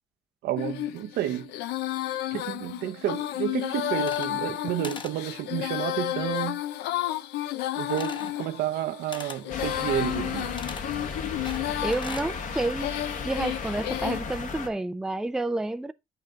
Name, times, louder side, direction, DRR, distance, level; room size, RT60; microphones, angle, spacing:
voice 1, 0.4-1.5 2.3-6.6 7.8-10.6, right 12 dB, 75° right, 0.8 m, -30 dB
Female singing, 0.6-14.2, left 14 dB, 85° left, 0.7 m, -32 dB
sound 1, 3.9-4.6 4.8-5.2 7.9-8.4 9.1-9.4 10.6-10.9 11.4-12.3, left 4 dB, 30° left, 1.0 m, -40 dB
sound 2, 9.5-14.7, left 4 dB, 50° left, 1.5 m, -35 dB
voice 2, 11.8-12.9 13.2-15.9, right 2 dB, 5° right, 0.4 m, -29 dB
8.0 x 5.7 x 3.9 m
cardioid pair, 110°, 17 cm